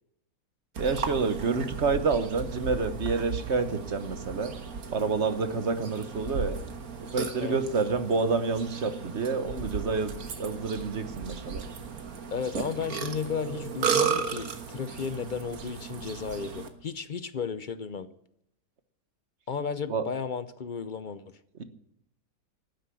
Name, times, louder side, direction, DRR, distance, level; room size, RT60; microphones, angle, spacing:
voice 1, 0.8-4.5 4.9-6.6 7.1-11.6 19.9-20.0, right 4 dB, 55° right, 10 dB, 1.4 m, -28 dB
Burping eructation, 0.8-16.7, right 6 dB, 85° right, 1.8 m, -35 dB
voice 2, 12.3-18.1 19.5-21.2, left 6 dB, 50° left, 14 dB, 0.6 m, -34 dB
12.5 x 9.6 x 9.8 m, 0.78 s
omnidirectional pair, 1.5 m